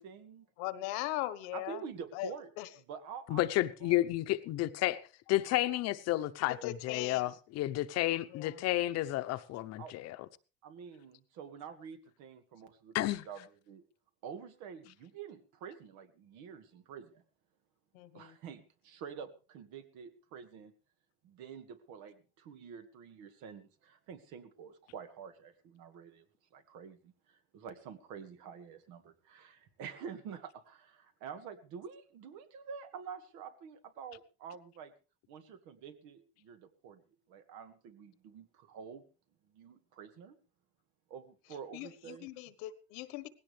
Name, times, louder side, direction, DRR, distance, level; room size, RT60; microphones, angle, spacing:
voice 1, 0.0-0.5 1.5-4.0 9.8-10.0 10.6-13.8 14.2-17.2 18.1-20.7 21.2-26.3 26.5-34.9 35.3-37.0 37.3-39.0 39.5-40.4 41.1-42.3, right 7 dB, 70° right, 2.1 m, -48 dB
voice 2, 0.6-1.8 2.1-2.3 2.6-2.7 6.6-7.3 8.3-8.5 17.9-18.3 41.7-43.3, left 16 dB, 80° left, 1.3 m, -39 dB
voice 3, 3.3-5.0 5.3-10.2 12.9-13.2, left 16 dB, 55° left, 0.9 m, -31 dB
18.5 x 16.5 x 3.4 m
cardioid pair, 140°, 31 cm